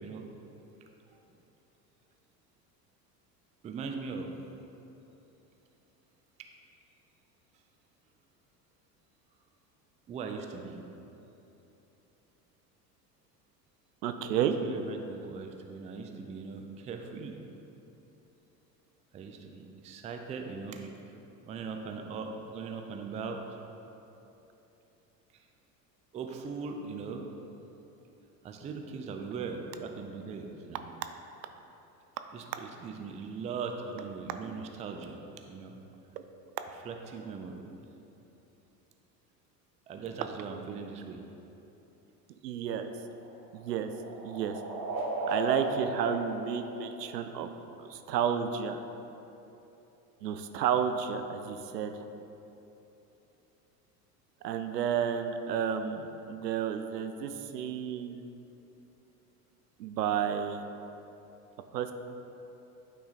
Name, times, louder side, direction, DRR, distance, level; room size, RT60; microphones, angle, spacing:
voice 1, 3.6-4.3 6.4-6.5 10.1-10.8 14.4-17.4 19.1-20.9 21.4-23.4 25.3-25.5 26.1-27.2 28.4-30.8 32.3-35.2 35.5-35.8 36.8-37.6 39.9-41.2, right 5 dB, 15° right, 4 dB, 0.3 m, -40 dB
voice 2, 14.0-14.5 42.4-42.9 43.5-43.9 44.2-44.6 45.3-47.5 47.8-48.8 50.2-52.1 54.4-58.2 59.8-60.6 61.7-61.9, right 8 dB, 80° right, 8 dB, 0.6 m, -31 dB
sound 1, 42.9-47.5, right 2 dB, 50° right, 1.3 m, -36 dB
9.2 x 3.9 x 4.1 m, 3.0 s
hypercardioid pair, 75°, 49 cm